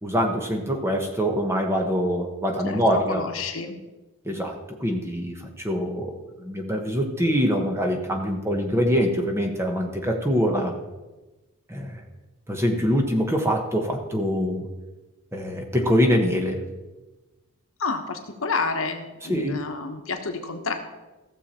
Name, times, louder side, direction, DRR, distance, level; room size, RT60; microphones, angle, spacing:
voice 1, 0.0-3.2 4.2-6.1 6.4-10.7 11.7-12.0 12.5-14.7 15.3-16.6 19.2-19.6, equal, 10° right, 2 dB, 1.1 m, -24 dB
voice 2, 2.6-3.8 4.3-4.4 17.8-20.7, left 4 dB, 75° left, 5 dB, 1.2 m, -29 dB
15.5 x 6.9 x 4.3 m, 1.1 s
head